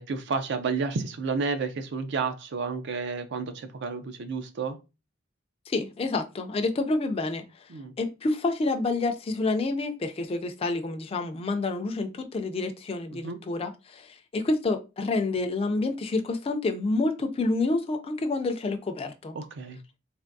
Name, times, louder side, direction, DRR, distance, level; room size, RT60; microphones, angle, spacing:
voice 1, 0.0-4.8 7.7-7.9 13.1-13.4 19.3-19.8, right 4 dB, 60° right, 9 dB, 0.4 m, -31 dB
voice 2, 5.7-7.4 8.0-19.4, left 3 dB, 30° left, 6 dB, 0.3 m, -28 dB
3.4 x 2.5 x 2.6 m, 0.28 s
head